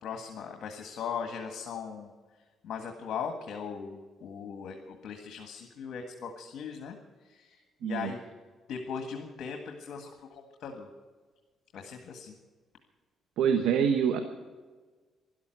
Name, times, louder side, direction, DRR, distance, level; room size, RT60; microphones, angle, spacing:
voice 1, 0.0-2.1 2.6-6.9 7.3-8.2 8.7-10.9 11.7-12.3, left 6 dB, 70° left, 4 dB, 1.7 m, -39 dB
voice 2, 13.4-14.2, right 7 dB, 90° right, 7 dB, 1.1 m, -25 dB
12.5 x 12.0 x 9.2 m, 1.4 s
cardioid pair, 90°, 0 cm